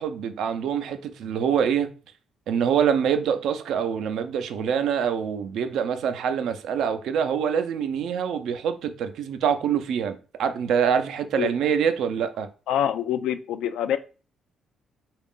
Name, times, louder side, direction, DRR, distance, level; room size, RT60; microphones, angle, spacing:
voice 1, 0.0-1.9 2.5-12.5, right 7 dB, 75° right, 0.4 m, -25 dB
voice 2, 12.7-14.0, left 10 dB, 85° left, 0.3 m, -25 dB
4.0 x 2.4 x 3.6 m
cardioid pair, 90°, 0 cm